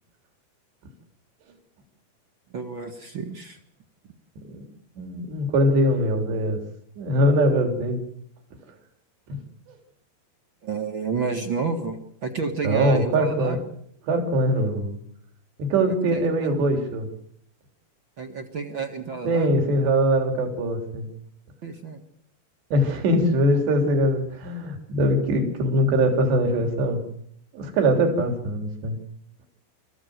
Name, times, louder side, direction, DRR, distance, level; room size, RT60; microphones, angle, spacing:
voice 1, 2.5-3.6 10.6-13.6 16.1-16.5 18.2-19.5 21.6-22.0, right 4 dB, 50° right, 5 dB, 1.5 m, -30 dB
voice 2, 5.0-6.6 7.0-8.0 12.6-13.6 14.1-15.0 15.6-17.1 19.3-21.1 22.7-27.0 27.5-29.0, equal, 80° right, 4 dB, 5.6 m, -22 dB
29.0 x 15.0 x 8.0 m, 0.71 s
omnidirectional pair, 4.8 m